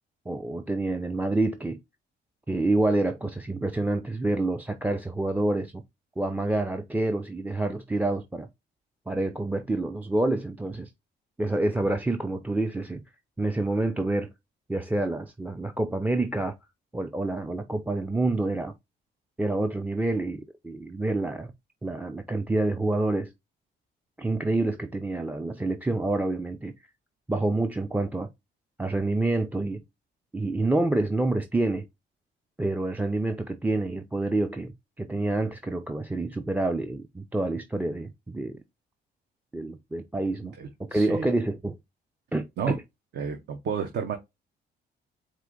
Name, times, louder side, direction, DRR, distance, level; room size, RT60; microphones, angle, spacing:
voice 1, 0.3-1.8 2.5-5.8 6.2-8.5 9.1-10.9 11.4-13.0 13.4-14.3 14.7-16.5 16.9-18.7 19.4-21.5 21.8-23.3 24.2-26.7 27.3-28.3 28.8-29.8 30.3-31.9 32.6-34.7 35.0-38.6 39.5-40.5 40.8-41.8 42.3-42.8, right 2 dB, 10° right, 0.4 m, -27 dB
voice 2, 40.4-41.3 42.6-42.8 43.2-44.1, right 6 dB, 60° right, 0.9 m, -31 dB
4.5 x 2.6 x 3.7 m
cardioid pair, 90°, 20 cm